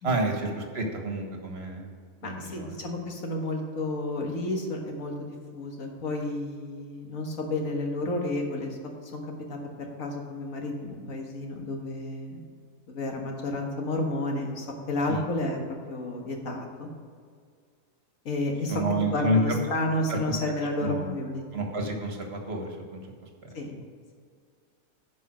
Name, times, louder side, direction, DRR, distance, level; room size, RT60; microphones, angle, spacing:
voice 1, 0.0-1.9 2.2-2.8 15.1-15.2 18.7-19.6 20.1-20.2 20.8-21.1 21.5-23.1, right 1 dB, 50° right, 2 dB, 1.6 m, -29 dB
voice 2, 2.2-8.8 9.0-9.2 9.5-9.6 10.0-12.4 12.9-15.6 15.9-16.9 18.3-18.8 19.1-21.4 23.5-23.8, left 2 dB, 75° left, 2 dB, 1.9 m, -31 dB
11.0 x 5.3 x 6.2 m, 2.1 s
omnidirectional pair, 1.4 m